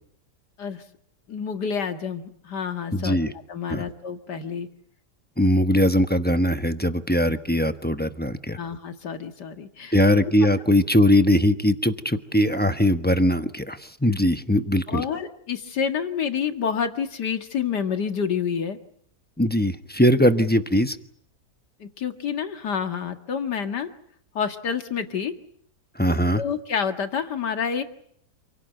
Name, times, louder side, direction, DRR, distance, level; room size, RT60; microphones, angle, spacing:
voice 1, 1.3-3.2 3.5-4.7 6.8-6.9 8.6-9.9 14.9-18.8 21.8-23.9 24.3-25.3 26.4-27.8, left 7 dB, 75° left, 7 dB, 2.4 m, -28 dB
voice 2, 2.9-3.3 3.7-3.8 5.4-8.6 9.9-15.0 19.4-21.0 25.9-26.4, left 1 dB, 5° left, 8 dB, 0.9 m, -21 dB
28.0 x 17.5 x 9.2 m, 0.67 s
omnidirectional pair, 1.8 m